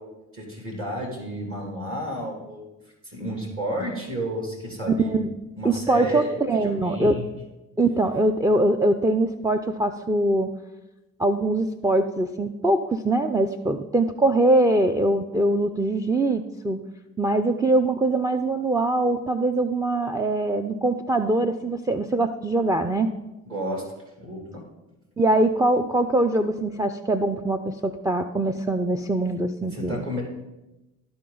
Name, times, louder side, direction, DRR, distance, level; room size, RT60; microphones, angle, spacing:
voice 1, 0.0-2.7 3.0-5.2 5.6-7.3 23.5-23.8 24.2-24.4 29.6-30.2, equal, 35° right, 0 dB, 2.6 m, -31 dB
voice 2, 4.9-5.3 5.6-7.2 7.8-10.5 11.2-16.8 17.2-23.1 25.2-30.1, right 2 dB, 10° right, 8 dB, 0.5 m, -22 dB
12.5 x 4.3 x 3.9 m, 1.0 s
hypercardioid pair, 45°, 37 cm